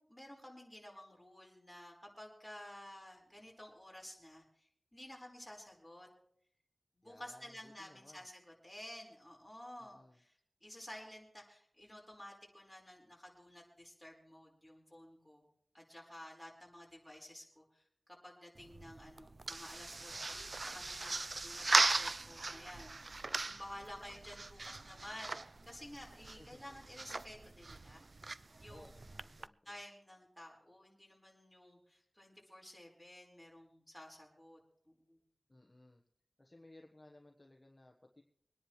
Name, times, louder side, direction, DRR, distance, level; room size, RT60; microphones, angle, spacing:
voice 1, 0.1-6.1 6.9-15.5 15.7-17.8 18.2-28.0 28.6-29.1 29.6-34.6 34.8-35.2, left 1 dB, ahead, -2 dB, 4.9 m, -53 dB
voice 2, 7.0-8.3 9.8-10.2 26.3-26.8 28.7-29.8 35.5-36.0 36.4-38.2, left 2 dB, 30° left, 1 dB, 1.2 m, -60 dB
sound 1, 18.5-29.5, right 3 dB, 50° right, 0.4 m, -38 dB
24.5 x 10.0 x 3.3 m, 0.66 s
wide cardioid pair, 70°, 0 cm